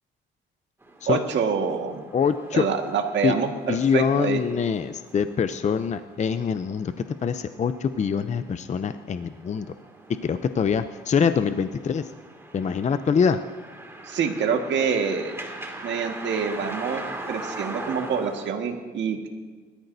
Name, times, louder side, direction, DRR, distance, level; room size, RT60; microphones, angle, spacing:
sound 1, 0.8-18.5, right 2 dB, 10° right, 2.3 m, -41 dB
voice 1, 1.1-2.0 2.5-4.4 14.1-15.3 15.8-19.3, right 6 dB, 65° right, 3 dB, 1.8 m, -26 dB
voice 2, 2.1-2.7 3.2-3.3 3.7-6.9 7.2-9.7 10.2-12.1 12.5-13.4, left 6 dB, 35° left, 11 dB, 0.6 m, -24 dB
21.0 x 13.5 x 2.7 m, 1.5 s
cardioid pair, 90°, 20 cm